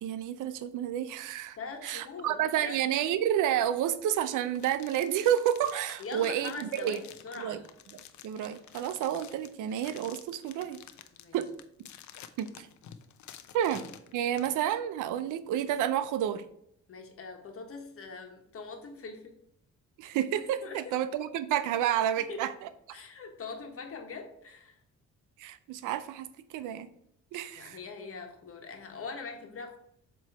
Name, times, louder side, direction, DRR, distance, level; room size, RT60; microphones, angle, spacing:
voice 1, 0.0-1.6 1.8-7.0 7.4-7.6 7.9-10.8 11.3-11.5 12.4-12.7 13.5-13.9 14.1-16.4 20.0-22.5 22.9-23.0 25.4-26.3 26.5-26.9 27.3-27.8, right 10 dB, 90° right, 13 dB, 0.6 m, -30 dB
voice 2, 1.6-2.8 6.0-7.6 11.1-11.4 16.9-19.3 20.6-21.0 22.2-22.4 22.9-24.8 27.5-29.8, left 4 dB, 45° left, 4 dB, 1.3 m, -42 dB
sound 1, 4.5-14.6, left 10 dB, 70° left, 0.6 m, -50 dB
7.5 x 3.1 x 4.7 m, 0.74 s
cardioid pair, 90°, 30 cm